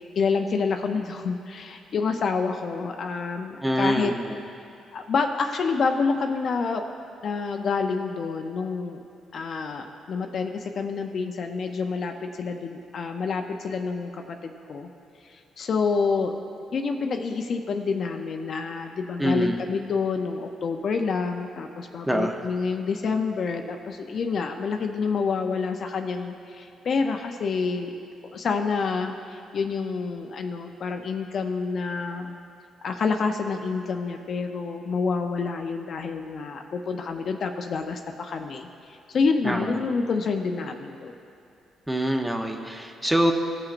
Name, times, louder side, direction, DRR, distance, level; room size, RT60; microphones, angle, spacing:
voice 1, 0.2-4.1 4.9-6.8 7.2-9.0 9.3-14.9 15.6-16.3 16.7-27.9 28.3-32.3 32.8-38.7 39.1-41.1, left 4 dB, 55° left, 5 dB, 0.5 m, -28 dB
voice 2, 3.6-4.4 19.2-19.6 22.1-22.4 39.4-39.8 41.9-43.3, equal, 10° right, 2 dB, 0.8 m, -25 dB
17.0 x 5.9 x 2.5 m, 2.6 s
cardioid pair, 90°, 0 cm